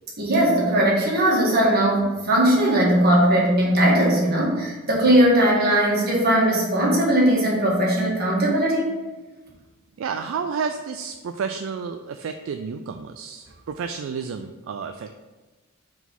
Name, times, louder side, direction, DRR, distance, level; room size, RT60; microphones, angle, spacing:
voice 1, 0.2-8.9, right 1 dB, 50° right, -4 dB, 1.7 m, -19 dB
voice 2, 10.0-15.2, right 6 dB, 70° right, 6 dB, 0.3 m, -31 dB
4.8 x 4.0 x 5.3 m, 1.2 s
head